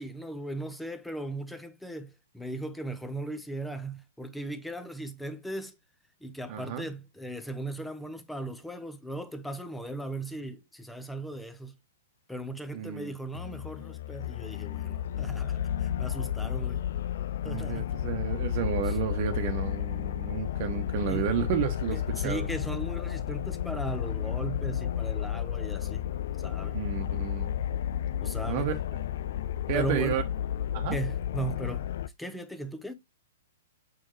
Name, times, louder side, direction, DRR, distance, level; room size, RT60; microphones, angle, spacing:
voice 1, 0.0-5.7 6.2-11.8 12.3-16.9 17.4-17.9 18.9-19.0 21.1-21.3 21.9-26.0 26.4-26.8 28.2-28.7 29.7-30.2 30.9-31.9 32.2-32.9, right 2 dB, 5° left, 0.9 m, -37 dB
voice 2, 6.5-6.9 12.7-13.1 17.4-22.5 26.7-27.5 28.5-28.8 29.7-30.2 30.7-31.0, right 9 dB, 45° right, 1.1 m, -32 dB
sound 1, 13.3-32.1, left 10 dB, 60° left, 0.4 m, -32 dB
7.3 x 4.4 x 3.2 m
hypercardioid pair, 120°, 0 cm